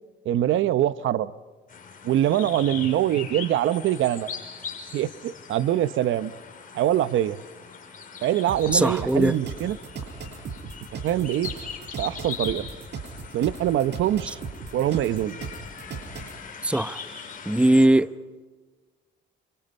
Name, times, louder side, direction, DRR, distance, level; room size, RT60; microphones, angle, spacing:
voice 1, 0.2-1.3 2.0-4.3 4.9-6.3 6.7-7.4 8.2-9.8 11.0-11.5 12.0-12.6 13.3-14.4 14.7-15.4, right 12 dB, 80° right, 0.8 m, -23 dB
sound 1, 1.7-17.9, left 6 dB, 45° left, 5.7 m, -41 dB
sound 2, 8.5-16.4, right 5 dB, 60° right, 7.0 m, -37 dB
voice 2, 8.7-9.3 16.6-17.0 17.5-18.1, right 1 dB, 5° right, 0.8 m, -19 dB
30.0 x 27.0 x 5.5 m
cardioid pair, 90°, 20 cm